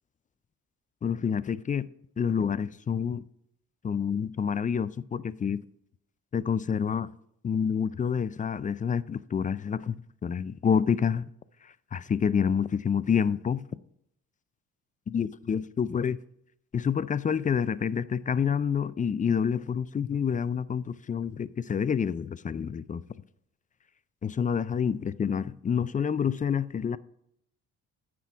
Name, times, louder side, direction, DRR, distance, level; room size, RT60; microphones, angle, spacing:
voice 1, 1.0-1.9 2.2-3.2 3.8-5.6 6.3-7.1 7.4-11.3 11.9-13.7 15.1-16.2 16.7-23.0 24.2-27.0, left 7 dB, 20° left, 0.3 m, -28 dB
9.2 x 6.1 x 3.5 m
supercardioid pair, 65°, 39 cm